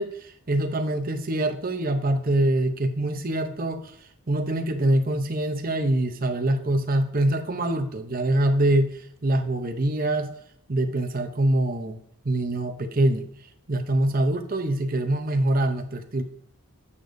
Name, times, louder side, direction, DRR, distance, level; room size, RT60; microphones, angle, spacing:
voice 1, 0.0-3.9 4.3-10.3 10.7-12.0 12.2-13.2 13.7-16.2, right 1 dB, 40° right, 6 dB, 0.8 m, -24 dB
9.8 x 6.8 x 2.7 m, 0.66 s
head